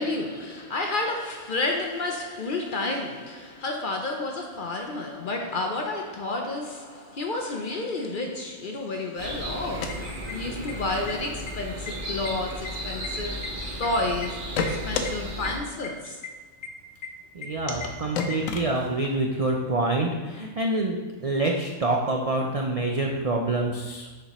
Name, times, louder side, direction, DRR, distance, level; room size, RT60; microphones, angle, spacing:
voice 1, 0.0-13.4 13.8-16.2 17.7-17.9, left 2 dB, 55° left, 2 dB, 0.6 m, -31 dB
sound 1, 9.2-15.6, equal, 45° right, 1.0 m, -35 dB
sound 2, 9.6-10.7 11.0-11.1 11.5-11.9 12.2-13.9 14.2-15.1 15.4-15.5 15.8-15.9 16.2-16.3 16.6-16.7 17.0-17.1 17.4-17.5 17.8-17.9 18.1-19.2, left 5 dB, 75° left, 1.0 m, -31 dB
voice 2, 17.3-24.1, right 2 dB, 70° right, 1 dB, 0.3 m, -26 dB
6.6 x 5.4 x 3.0 m, 1.3 s
omnidirectional pair, 1.4 m